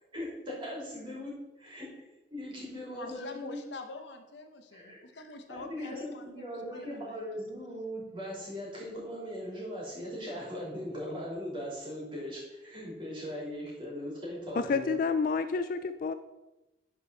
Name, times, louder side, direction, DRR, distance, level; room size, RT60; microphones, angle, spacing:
voice 1, 0.1-1.9 2.3-3.6 4.7-5.0 5.5-15.0, equal, 30° right, -4 dB, 2.9 m, -39 dB
voice 2, 2.9-7.2, left 2 dB, 80° left, 6 dB, 0.9 m, -45 dB
voice 3, 14.6-16.1, left 5 dB, 50° left, 10 dB, 0.3 m, -29 dB
11.0 x 4.6 x 3.9 m, 1.0 s
head